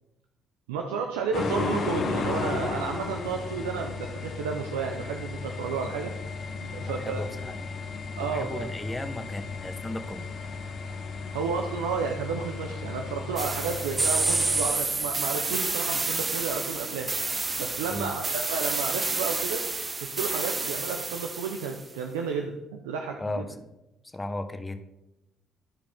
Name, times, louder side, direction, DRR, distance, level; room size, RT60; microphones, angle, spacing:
voice 1, 0.7-6.1 6.6-7.3 8.2-8.7 11.3-17.1 17.6-19.7 20.0-23.4, right 5 dB, 85° right, 3 dB, 0.7 m, -32 dB
sound 1, 1.3-14.7, left 4 dB, 55° left, 1.2 m, -35 dB
sound 2, 3.6-18.0, left 4 dB, 80° left, 0.9 m, -49 dB
voice 2, 6.8-7.9 8.2-10.3 17.9-18.1 23.2-23.8 24.0-24.8, left 1 dB, 20° left, 8 dB, 1.1 m, -36 dB
sound 3, 13.4-21.8, right 3 dB, 30° right, 0.8 m, -29 dB
13.5 x 4.9 x 3.5 m, 0.94 s
hypercardioid pair, 55°, 0 cm